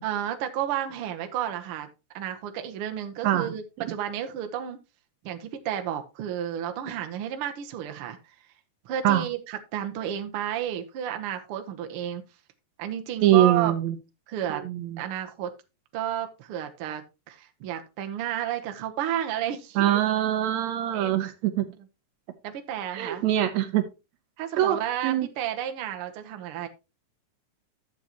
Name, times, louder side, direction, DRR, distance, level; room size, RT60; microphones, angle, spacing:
voice 1, 0.0-1.9 2.1-4.8 5.2-8.2 8.8-12.2 12.8-13.7 14.3-14.6 15.0-15.5 15.9-20.0 20.9-21.2 22.4-23.2 24.4-26.7, right 10 dB, 60° right, 1.6 m, -32 dB
voice 2, 13.2-14.0 14.5-15.0 19.8-21.7 22.9-23.9 24.6-25.3, right 12 dB, 75° right, 2.0 m, -23 dB
12.0 x 7.4 x 2.9 m
omnidirectional pair, 3.4 m